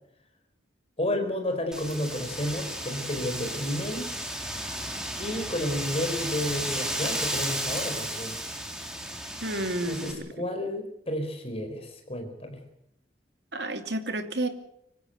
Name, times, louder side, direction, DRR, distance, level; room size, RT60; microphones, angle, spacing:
voice 1, 1.0-4.1 5.2-8.4 9.9-12.6, left 1 dB, 35° left, 6 dB, 4.7 m, -31 dB
Wind, 1.7-10.1, right 1 dB, 5° right, 3.8 m, -33 dB
voice 2, 9.4-10.5 13.5-14.5, right 1 dB, 70° right, 7 dB, 2.7 m, -31 dB
25.5 x 15.5 x 8.0 m, 0.78 s
head